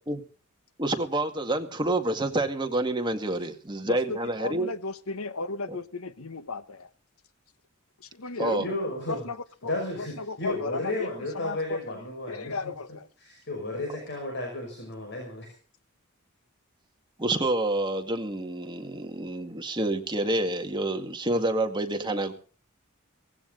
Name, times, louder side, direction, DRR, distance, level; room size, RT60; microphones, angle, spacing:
voice 1, 0.8-4.7 5.7-5.8 8.4-8.7 17.2-22.3, right 2 dB, 20° right, 2.0 m, -28 dB
voice 2, 3.8-6.9 8.0-9.4 9.6-11.1 11.3-13.1, left 3 dB, 80° left, 1.2 m, -35 dB
voice 3, 8.6-9.2 9.6-12.7 13.2-15.5, left 2 dB, 55° left, 5.7 m, -33 dB
18.0 x 16.0 x 3.9 m
head